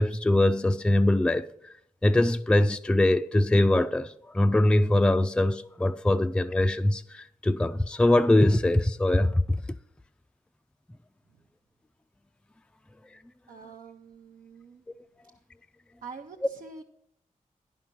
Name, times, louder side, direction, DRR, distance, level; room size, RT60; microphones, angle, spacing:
voice 1, 0.0-1.5 2.0-9.6, left 1 dB, 5° left, 0.3 m, -22 dB
voice 2, 13.5-14.8 16.0-16.8, right 5 dB, 80° right, 0.7 m, -45 dB
10.0 x 5.6 x 6.1 m
cardioid pair, 65°, 14 cm